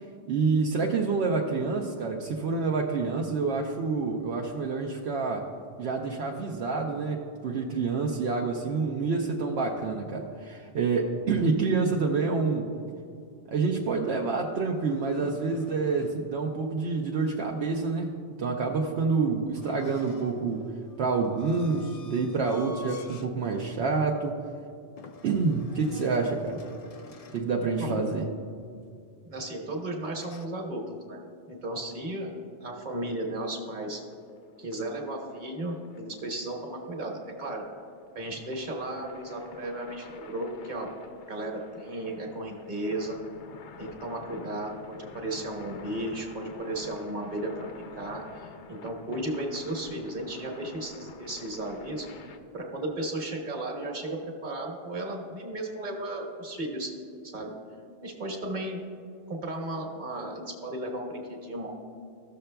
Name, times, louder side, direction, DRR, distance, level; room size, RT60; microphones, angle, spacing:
voice 1, 0.3-5.5 5.8-12.7 13.5-18.1 18.4-20.7 21.0-24.4 25.2-26.6 27.3-28.3, right 4 dB, 75° right, 0 dB, 0.9 m, -27 dB
sound 1, 13.9-16.2 19.5-23.4 23.8-24.0 25.0-27.5 30.1-30.5, left 4 dB, 50° left, 0.4 m, -49 dB
voice 2, 29.2-31.2 31.5-32.3 32.6-34.0 34.6-37.6 38.1-40.9 41.3-43.2 43.8-47.7 48.0-48.2 48.7-52.1 52.5-56.9 57.3-57.5 58.0-58.8 59.3-61.7, right 1 dB, 45° right, 1 dB, 1.3 m, -34 dB
sound 2, 34.1-52.4, left 5 dB, 85° left, 0.9 m, -49 dB
15.0 x 6.6 x 2.2 m, 2.4 s
omnidirectional pair, 1.1 m